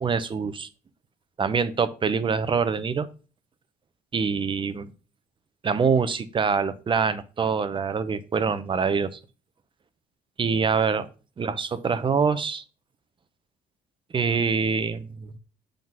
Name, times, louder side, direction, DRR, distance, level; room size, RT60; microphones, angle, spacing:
voice 1, 0.0-0.7 1.4-3.1 4.1-4.9 5.6-9.2 10.4-11.1 11.4-12.6 14.1-15.3, right 5 dB, 30° right, 13 dB, 0.7 m, -25 dB
7.4 x 3.9 x 6.0 m, 0.35 s
cardioid pair, 110°, 17 cm